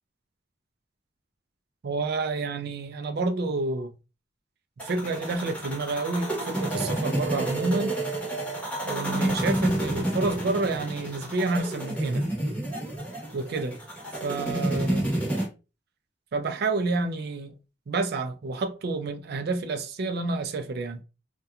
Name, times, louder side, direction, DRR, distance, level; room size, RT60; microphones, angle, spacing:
voice 1, 1.8-3.9 4.8-7.9 8.9-12.3 13.3-13.7 14.2-15.1 16.3-17.5 17.9-21.0, right 3 dB, 60° right, 0.4 m, -29 dB
sound 1, 4.8-15.5, right 1 dB, 10° left, 1.0 m, -29 dB
2.8 x 2.2 x 2.3 m
head